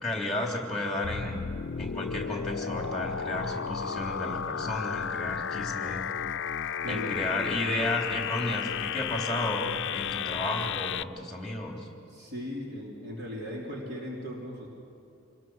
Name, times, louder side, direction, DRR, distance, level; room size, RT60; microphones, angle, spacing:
voice 1, 0.0-1.5 1.8-6.1 6.9-11.9, left 1 dB, ahead, 0 dB, 3.2 m, -33 dB
sound 1, 1.0-11.0, left 7 dB, 65° left, 0.5 m, -33 dB
voice 2, 6.8-7.2 12.1-14.7, left 1 dB, 55° right, -3 dB, 3.4 m, -37 dB
26.0 x 21.0 x 6.3 m, 2.7 s
head